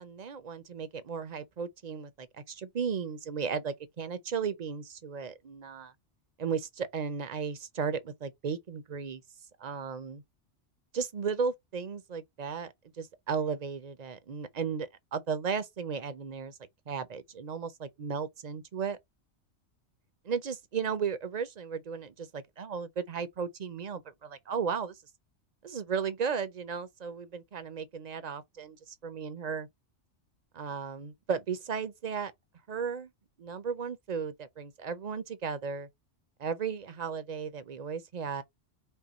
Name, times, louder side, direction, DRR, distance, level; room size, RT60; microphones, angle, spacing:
voice 1, 0.0-5.9 6.4-9.2 9.6-10.2 10.9-16.6 16.9-19.0 20.3-25.0 25.6-29.7 30.5-32.3 32.7-33.1 33.4-35.9 36.4-38.4, right 6 dB, 45° right, 0.7 m, -35 dB
5.5 x 2.3 x 4.1 m
omnidirectional pair, 1.2 m